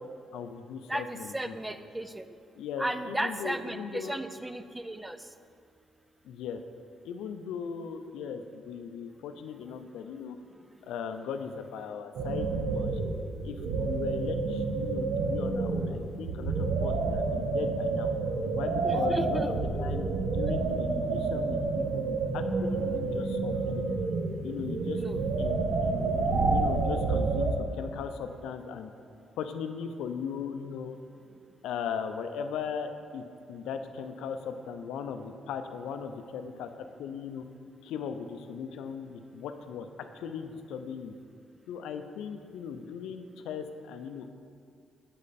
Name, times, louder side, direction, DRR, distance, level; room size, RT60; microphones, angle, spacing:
voice 1, 0.3-1.6 2.6-4.2 6.2-6.6 7.0-10.4 10.9-13.0 13.4-18.1 18.5-24.0 24.4-25.0 25.4-28.9 29.4-31.0 31.6-36.7 37.0-37.4 37.8-39.9 40.1-41.1 41.7-44.3, left 7 dB, 85° left, 8 dB, 0.4 m, -38 dB
voice 2, 0.9-2.2 2.8-5.2 18.8-19.5 25.0-25.2, right 1 dB, 10° right, 10 dB, 0.3 m, -35 dB
sound 1, 12.1-27.5, right 3 dB, 80° right, 0.7 m, -29 dB
7.3 x 5.3 x 4.1 m, 2.3 s
cardioid pair, 90°, 0 cm